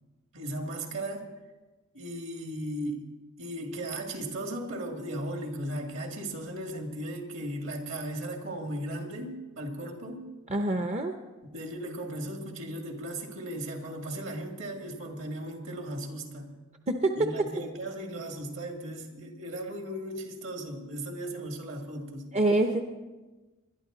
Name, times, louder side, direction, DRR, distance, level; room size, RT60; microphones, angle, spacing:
voice 1, 0.3-1.3 1.9-3.1 3.4-10.3 11.4-16.5 17.2-22.3, right 1 dB, 65° right, 3 dB, 2.2 m, -36 dB
voice 2, 10.5-11.1 16.9-17.2 22.3-22.8, right 2 dB, 35° right, 5 dB, 0.7 m, -25 dB
21.0 x 12.0 x 3.9 m, 1.2 s
head